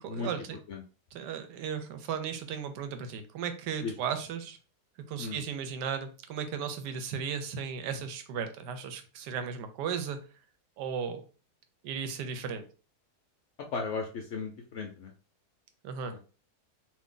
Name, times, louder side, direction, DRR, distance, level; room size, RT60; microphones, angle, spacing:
voice 1, 0.0-0.6 1.1-4.6 5.1-10.2 10.8-11.2 11.8-12.6 15.8-16.1, right 7 dB, 90° right, 8 dB, 1.2 m, -35 dB
voice 2, 13.7-15.1 16.0-16.2, left 4 dB, 70° left, 2 dB, 0.7 m, -36 dB
2.6 x 2.6 x 3.6 m, 0.36 s
omnidirectional pair, 1.7 m